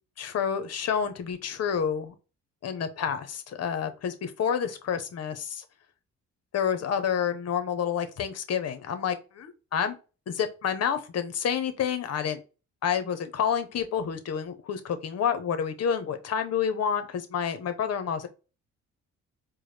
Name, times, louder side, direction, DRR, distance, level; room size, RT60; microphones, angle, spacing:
voice 1, 0.2-2.1 2.6-5.6 6.5-9.9 10.3-12.4 12.8-18.3, left 7 dB, 55° left, 9 dB, 0.8 m, -29 dB
4.6 x 2.1 x 3.3 m, 0.31 s
cardioid pair, 90°, 30 cm